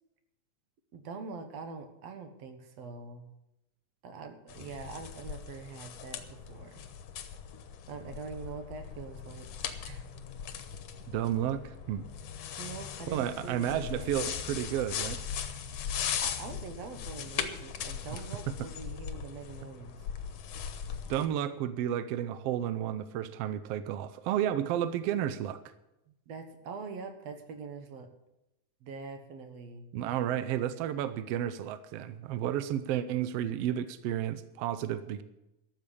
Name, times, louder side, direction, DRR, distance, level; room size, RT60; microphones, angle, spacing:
voice 1, 0.9-3.3 4.0-6.8 7.9-9.5 9.8-10.1 12.6-13.7 13.9-14.1 16.2-20.0 26.1-28.1 28.8-29.9, right 5 dB, 60° right, 7 dB, 2.3 m, -44 dB
sound 1, 4.5-21.3, left 8 dB, 65° left, 1.9 m, -39 dB
voice 2, 11.1-12.0 13.1-15.2 18.5-18.6 21.1-25.6 29.9-35.2, right 11 dB, 80° right, 12 dB, 1.4 m, -32 dB
13.0 x 7.5 x 8.4 m, 0.92 s
omnidirectional pair, 3.4 m